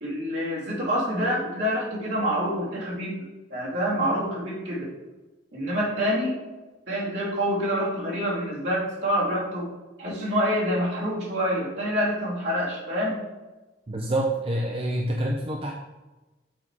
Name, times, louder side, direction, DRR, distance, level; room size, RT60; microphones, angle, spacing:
voice 1, 0.0-3.2 3.5-4.9 5.5-6.4 6.9-9.7 10.0-13.2, equal, 80° right, -6 dB, 2.4 m, -27 dB
voice 2, 13.9-15.7, right 1 dB, 35° right, 0 dB, 0.5 m, -27 dB
7.5 x 3.7 x 4.6 m, 1.1 s
head